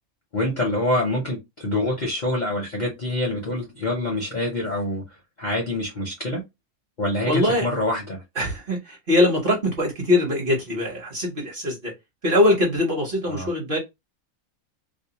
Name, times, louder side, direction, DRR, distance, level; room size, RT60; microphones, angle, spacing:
voice 1, 0.3-5.0 5.4-6.4 7.0-8.2 13.3-13.5, left 1 dB, 45° left, 0.6 m, -26 dB
voice 2, 7.2-7.7 8.4-11.9 12.2-13.8, left 1 dB, 45° right, 0.9 m, -22 dB
2.5 x 2.0 x 2.8 m
omnidirectional pair, 1.5 m